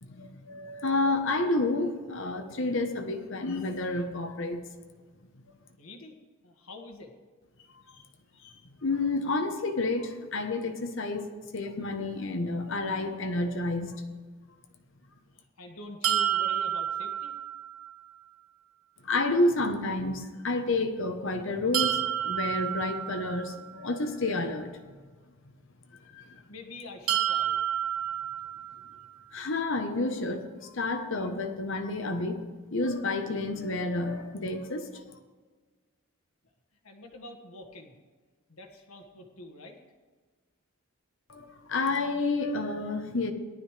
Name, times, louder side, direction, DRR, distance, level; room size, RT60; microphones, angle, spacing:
voice 1, 0.0-4.7 8.4-8.5 8.8-11.2 11.5-14.0 19.0-24.9 26.1-26.2 29.3-32.4 32.7-35.0 41.3-43.3, left 2 dB, 60° left, 6 dB, 1.0 m, -30 dB
voice 2, 5.8-6.2 6.4-7.1 15.3-17.3 26.5-27.6 36.8-38.0 38.5-39.8, left 2 dB, 75° left, 3 dB, 1.7 m, -46 dB
sound 1, 16.0-18.0 21.7-23.8 27.1-29.1, right 10 dB, 80° right, 1.0 m, -30 dB
18.0 x 12.0 x 3.3 m, 1.4 s
head